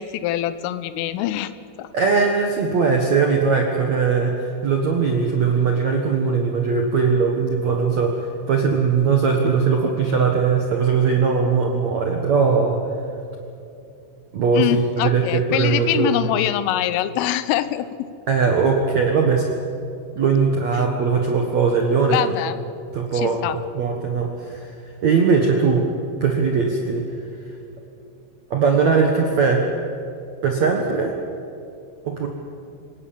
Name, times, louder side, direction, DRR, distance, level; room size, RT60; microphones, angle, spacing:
voice 1, 0.0-1.5 1.8-1.9 14.5-18.1 20.8-20.9 22.1-22.6 23.1-23.6, left 13 dB, 85° left, 13 dB, 3.4 m, -24 dB
voice 2, 1.9-12.8 14.3-16.3 18.3-19.5 20.1-22.3 22.9-23.5 23.7-24.7 25.0-25.9 26.2-27.1 28.5-29.7 30.4-31.1 32.0-32.3, right 5 dB, 75° right, 2 dB, 1.6 m, -20 dB
27.5 x 17.5 x 7.4 m, 2.6 s
omnidirectional pair, 5.6 m